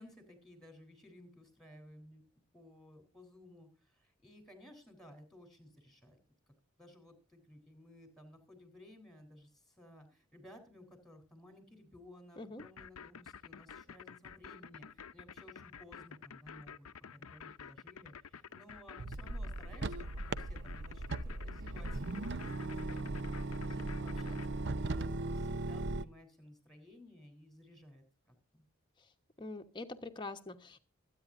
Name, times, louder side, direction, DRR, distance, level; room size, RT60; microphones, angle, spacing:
voice 1, 0.0-2.2 2.5-6.2 6.8-16.9 17.1-25.1 25.3-28.0 28.5-28.6, left 1 dB, ahead, 8 dB, 3.6 m, -57 dB
sound 1, 12.6-24.5, left 7 dB, 75° left, 0.7 m, -50 dB
sound 2, 19.0-26.0, right 2 dB, 50° right, 0.7 m, -38 dB
voice 2, 29.4-30.8, left 2 dB, 20° left, 5 dB, 1.1 m, -44 dB
23.5 x 9.4 x 2.6 m, 0.33 s
head